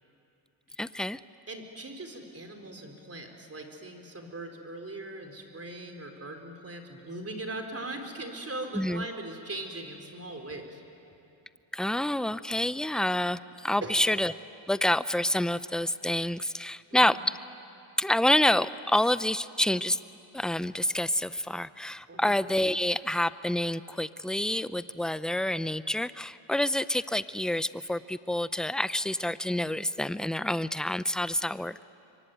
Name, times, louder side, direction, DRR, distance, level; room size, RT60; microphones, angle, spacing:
voice 1, 0.8-1.2 8.7-9.0 11.7-14.3 14.7-17.3 18.0-20.0 20.3-31.8, left 1 dB, ahead, 15 dB, 0.5 m, -28 dB
voice 2, 1.5-10.8 13.8-14.1 16.9-17.1 22.1-22.3, right 2 dB, 30° right, 3 dB, 4.3 m, -40 dB
26.5 x 24.0 x 9.2 m, 2.8 s
cardioid pair, 85°, 50 cm